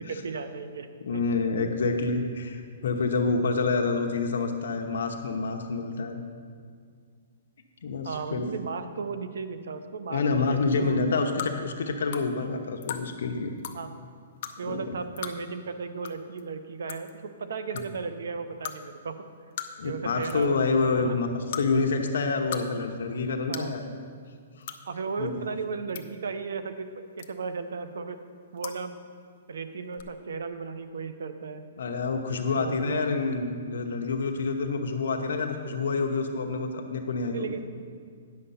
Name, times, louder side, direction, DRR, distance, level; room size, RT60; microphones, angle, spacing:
voice 1, 0.0-1.2 8.0-11.0 13.7-13.9 14.6-19.2 19.8-21.1 23.5-23.7 24.8-26.9 27.2-28.2 28.5-29.0 29.5-31.7 32.5-33.0 37.3-37.6, right 5 dB, 80° right, 10 dB, 0.7 m, -35 dB
voice 2, 1.1-6.2 7.8-8.5 10.1-13.5 14.7-14.8 19.8-21.3 21.6-23.8 25.2-25.4 31.8-37.6, left 4 dB, 75° left, 3 dB, 0.9 m, -27 dB
sound 1, 11.4-11.5 12.1-12.3 12.8-13.0 13.6-13.8 14.4-14.5 15.2-15.4 16.0-16.1 16.4-16.5 16.9-17.1 17.8-17.9 18.6-18.8 19.6-19.9 20.2-20.5 21.5-21.6 22.3-22.6 22.9-23.0 23.5-23.7 24.6-24.8 25.6-26.0 27.2-27.5 28.6-28.8 29.9-30.0, left 10 dB, 45° left, 0.6 m, -36 dB
9.5 x 6.6 x 5.6 m, 2.1 s
hypercardioid pair, 165°, 0 cm